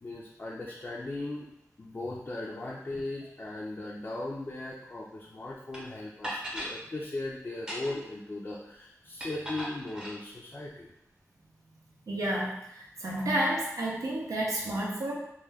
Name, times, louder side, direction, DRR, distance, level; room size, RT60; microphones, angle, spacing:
voice 1, 0.0-1.5 1.8-10.9, left 2 dB, 35° left, -3 dB, 0.4 m, -38 dB
sound 1, 5.7-5.8 6.2-6.8 7.5-8.1 9.2-10.2, equal, 15° right, 0.6 m, -37 dB
voice 2, 12.1-15.1, right 1 dB, 80° right, -4 dB, 0.5 m, -31 dB
2.2 x 2.1 x 3.3 m, 0.79 s
wide cardioid pair, 70°, 6 cm